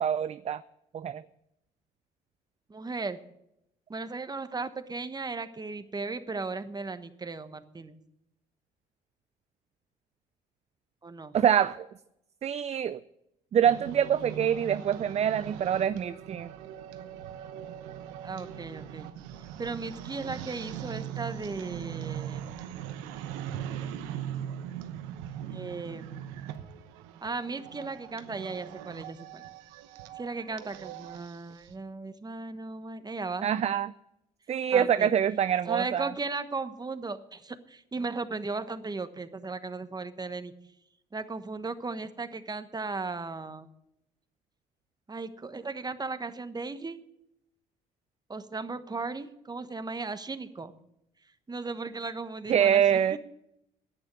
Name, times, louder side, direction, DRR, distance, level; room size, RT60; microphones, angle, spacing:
voice 1, 0.0-0.6 0.9-1.2 11.3-11.9 12.4-13.0 13.5-16.5 33.4-33.9 34.5-36.1 52.5-53.2, right 9 dB, 40° right, 14 dB, 0.5 m, -25 dB
voice 2, 2.7-3.2 3.9-8.0 11.0-11.3 18.2-19.1 19.6-22.5 25.4-26.2 27.2-29.4 30.1-33.5 34.7-35.1 35.7-40.5 41.1-43.7 45.1-47.0 48.3-50.7 51.5-53.2, right 3 dB, 25° right, 10 dB, 1.2 m, -36 dB
sound 1, 13.6-31.7, right 10 dB, 85° right, 1.0 m, -40 dB
10.5 x 9.3 x 9.6 m, 0.83 s
hypercardioid pair, 60°, 18 cm